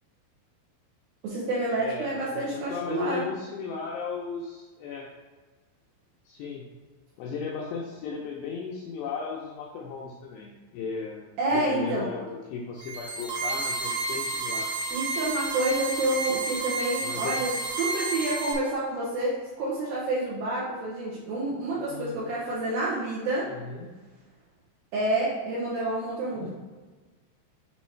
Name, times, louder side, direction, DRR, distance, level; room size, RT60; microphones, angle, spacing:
voice 1, 1.2-3.2 11.4-12.1 14.9-23.5 24.9-26.5, right 2 dB, 85° right, -7 dB, 2.1 m, -28 dB
voice 2, 1.8-5.1 6.3-6.7 7.2-11.3 11.5-14.7 17.0-17.5 21.8-22.2 23.5-23.9 26.4-26.5, left 5 dB, 85° left, -2 dB, 2.4 m, -36 dB
sound 1, 12.8-18.5, right 3 dB, 70° right, 2.8 m, -31 dB
7.3 x 3.0 x 4.4 m, 1.3 s
omnidirectional pair, 5.6 m